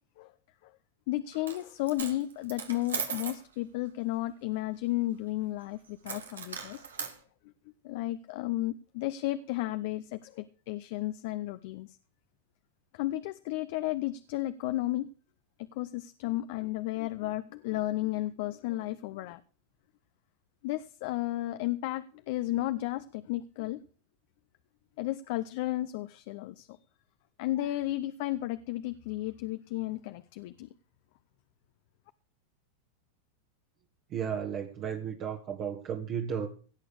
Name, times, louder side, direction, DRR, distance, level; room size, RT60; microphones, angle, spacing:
voice 1, 1.1-7.1 7.8-12.0 12.9-15.1 15.7-19.4 20.6-23.8 25.0-26.8 27.4-30.7, left 16 dB, 60° left, 0.7 m, -33 dB
Coin (dropping), 1.3-1.6 1.9-3.4 6.0-7.1, right 6 dB, 85° right, 2.2 m, -37 dB
voice 2, 34.1-36.5, right 8 dB, 40° right, 1.7 m, -34 dB
17.0 x 6.9 x 6.5 m
hypercardioid pair, 100°, 0 cm